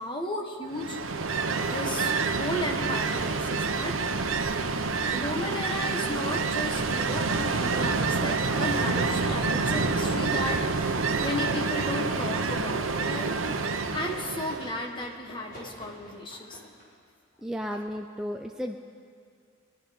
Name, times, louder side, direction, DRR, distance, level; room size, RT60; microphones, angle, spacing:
voice 1, 0.0-4.1 5.1-13.4 13.9-16.7, left 1 dB, 25° left, 2 dB, 1.4 m, -35 dB
Ocean, 0.7-14.8, right 4 dB, 85° right, 0.8 m, -28 dB
sound 1, 6.6-16.8, equal, 45° left, 3.9 m, -47 dB
voice 2, 17.4-18.8, equal, 5° right, 2 dB, 0.4 m, -33 dB
23.0 x 10.5 x 5.3 m, 2.2 s
head